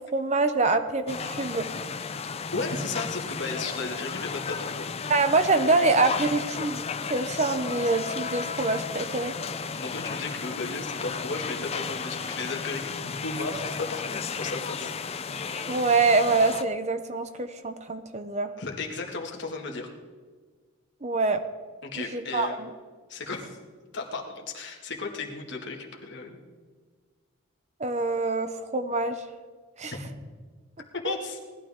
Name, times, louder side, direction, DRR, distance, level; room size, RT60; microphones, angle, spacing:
voice 1, 0.0-1.7 5.1-6.8 7.1-9.3 15.7-18.5 21.0-21.4 22.0-22.7 27.8-29.2 29.8-29.9 31.0-31.1, right 3 dB, 30° right, 9 dB, 0.8 m, -25 dB
sound 1, 1.1-16.6, left 5 dB, 30° left, 0.5 m, -34 dB
voice 2, 2.5-4.9 9.7-14.9 18.6-19.9 21.8-22.6 23.1-23.6 23.9-26.4 30.9-31.4, left 3 dB, 55° left, 1 dB, 2.1 m, -34 dB
19.0 x 12.0 x 3.7 m, 1.5 s
head